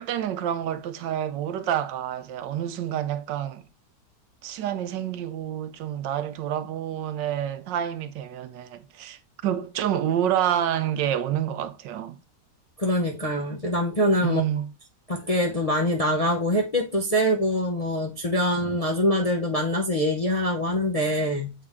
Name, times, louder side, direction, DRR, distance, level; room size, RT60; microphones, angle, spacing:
voice 1, 0.0-3.6 4.4-12.2 14.2-14.7, right 10 dB, 80° right, 1.3 m, -28 dB
voice 2, 12.8-14.4 15.1-21.5, equal, 40° left, 0.5 m, -24 dB
7.7 x 3.7 x 3.6 m
omnidirectional pair, 1.9 m